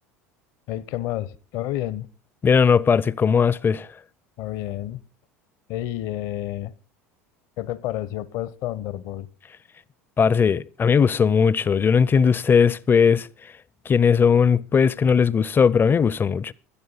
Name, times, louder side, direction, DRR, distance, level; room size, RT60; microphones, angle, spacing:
voice 1, 0.7-2.1 4.4-5.0 5.7-6.7 7.6-9.3, left 13 dB, 60° left, 0.9 m, -30 dB
voice 2, 2.4-3.9 10.2-13.3 13.9-16.5, left 6 dB, 25° left, 0.5 m, -18 dB
17.0 x 12.0 x 4.0 m
hypercardioid pair, 80°, 8 cm